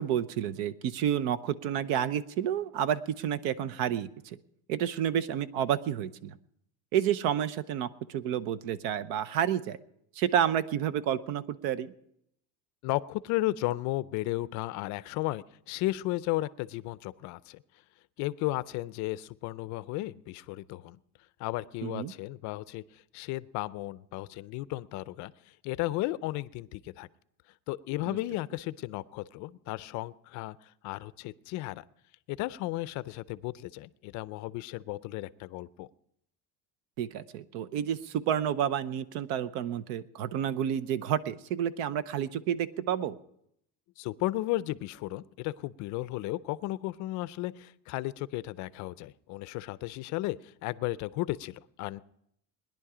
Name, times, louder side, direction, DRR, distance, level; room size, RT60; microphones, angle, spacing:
voice 1, 0.0-4.4 4.7-6.4 6.9-9.8 10.2-11.9 21.8-22.1 28.1-28.2 37.0-43.2, right 9 dB, 70° right, 15 dB, 0.8 m, -30 dB
voice 2, 12.8-17.6 18.2-21.0 21.4-25.3 25.6-27.1 27.7-31.8 32.3-35.9 44.0-52.0, left 17 dB, 50° left, 17 dB, 0.5 m, -34 dB
20.0 x 10.5 x 4.9 m, 0.74 s
cardioid pair, 155°, 37 cm